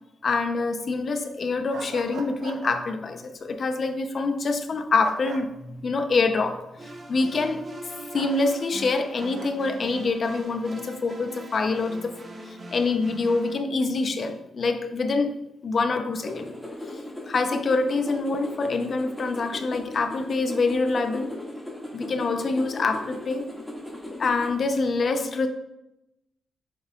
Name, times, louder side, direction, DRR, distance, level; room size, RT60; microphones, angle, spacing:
voice 1, 0.2-7.6 8.1-12.1 12.5-15.3 15.6-16.5 17.3-21.3 21.9-23.5 24.2-25.5, left 3 dB, 50° left, 7 dB, 0.6 m, -26 dB
sound 1, 1.7-2.8 5.0-5.4 8.1-8.4 9.1-9.5, right 5 dB, 85° right, 0.7 m, -38 dB
sound 2, 6.8-13.6, right 2 dB, 35° right, 1.3 m, -41 dB
sound 3, 16.3-24.5, left 1 dB, 5° left, 1.8 m, -38 dB
7.2 x 6.6 x 2.3 m, 0.89 s
cardioid pair, 75°, 0 cm